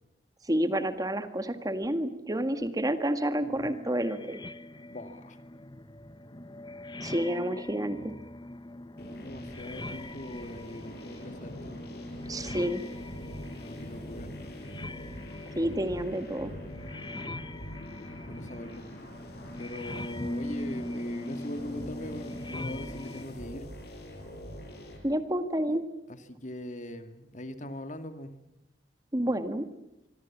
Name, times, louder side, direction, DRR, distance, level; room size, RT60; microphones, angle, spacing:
voice 1, 0.5-4.4 7.0-8.1 12.3-12.8 15.5-16.5 25.0-25.8 29.1-29.7, right 1 dB, 20° right, 10 dB, 1.8 m, -29 dB
sound 1, 3.4-23.3, left 1 dB, 25° left, 1.1 m, -41 dB
voice 2, 4.9-5.4 9.1-11.8 13.6-14.3 18.3-18.9 19.6-23.7 26.1-28.3, left 1 dB, 45° left, 9 dB, 2.2 m, -41 dB
sound 2, 9.0-25.0, equal, 65° left, 6.9 m, -44 dB
25.5 x 24.5 x 7.4 m, 0.89 s
head